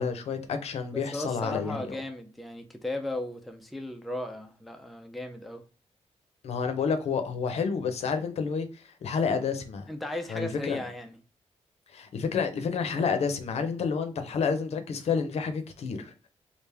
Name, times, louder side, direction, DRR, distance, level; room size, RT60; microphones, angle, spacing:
voice 1, 0.0-1.9 6.4-9.8 10.3-10.8 11.9-16.1, left 5 dB, 65° left, 0.6 m, -29 dB
voice 2, 0.9-5.6 9.9-11.2, left 1 dB, ahead, 0.3 m, -36 dB
3.4 x 2.5 x 3.3 m
wide cardioid pair, 180°, 12 cm